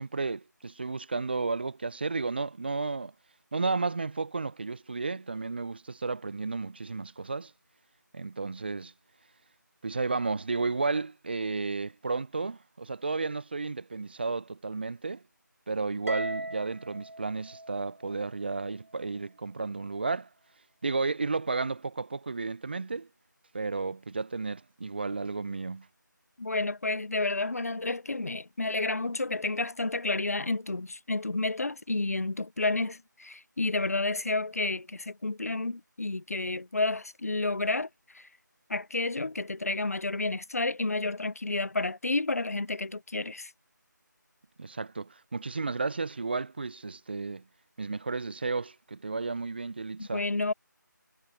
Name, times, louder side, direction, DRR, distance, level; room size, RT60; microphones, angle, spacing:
voice 1, 0.0-3.1 3.5-7.5 8.1-8.9 9.8-15.2 15.7-20.3 20.8-23.1 23.5-25.9 44.6-47.4 47.8-50.2, right 3 dB, 30° right, 1.1 m, -33 dB
Harp, 16.1-18.5, right 1 dB, 50° right, 3.5 m, -38 dB
voice 2, 26.4-37.9 38.1-38.3 38.7-43.5 50.0-50.5, left 2 dB, 50° left, 1.2 m, -30 dB
figure-of-eight pair, 165°, 11 cm